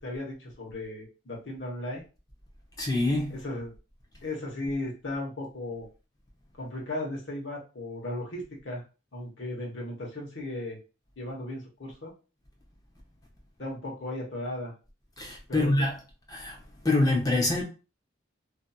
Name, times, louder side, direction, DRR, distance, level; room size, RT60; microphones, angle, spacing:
voice 1, 0.0-2.0 3.3-3.7 4.2-5.9 6.6-8.8 9.1-10.8 11.2-12.1 13.6-14.7 15.5-15.9, left 1 dB, 65° left, 1.0 m, -36 dB
voice 2, 2.8-3.4 15.2-16.0 16.3-16.6 16.8-17.6, left 2 dB, 20° left, 0.7 m, -25 dB
2.7 x 2.6 x 2.3 m
head